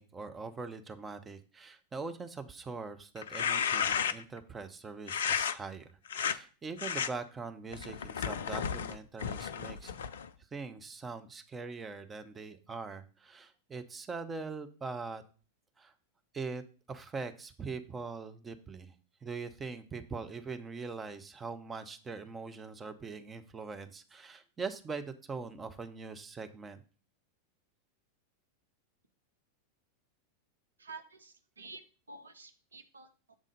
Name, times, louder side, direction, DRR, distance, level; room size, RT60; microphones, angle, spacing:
voice 1, 0.0-5.9 6.1-9.9 10.5-15.2 15.8-15.9 16.3-16.6 16.9-18.9 19.2-26.8, right 4 dB, 15° right, 8 dB, 0.7 m, -42 dB
sound 1, 3.2-4.4 5.1-5.6 6.1-6.4 6.8-7.1 7.7-10.3, left 7 dB, 60° left, 0.4 m, -33 dB
voice 2, 30.8-31.8 32.1-33.4, right 3 dB, 75° right, 7 dB, 0.7 m, -50 dB
7.4 x 3.7 x 5.3 m, 0.37 s
figure-of-eight pair, 90°, 0 cm